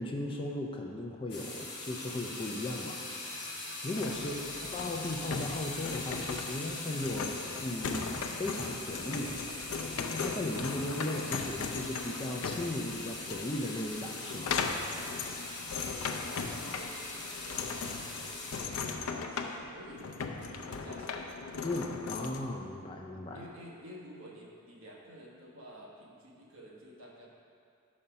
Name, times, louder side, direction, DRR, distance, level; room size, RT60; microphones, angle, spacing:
voice 1, 0.0-3.5 3.8-4.4 4.7-9.4 10.1-14.6 21.6-23.4, left 1 dB, 25° left, 1 dB, 0.4 m, -37 dB
sound 1, 1.3-18.6, left 2 dB, 50° left, 1.3 m, -41 dB
sound 2, 4.0-22.4, left 5 dB, 80° left, 0.5 m, -38 dB
voice 2, 4.2-4.6 15.9-18.7 19.3-21.3 23.3-27.3, equal, 65° right, -3 dB, 1.1 m, -52 dB
5.4 x 5.0 x 5.6 m, 2.4 s
head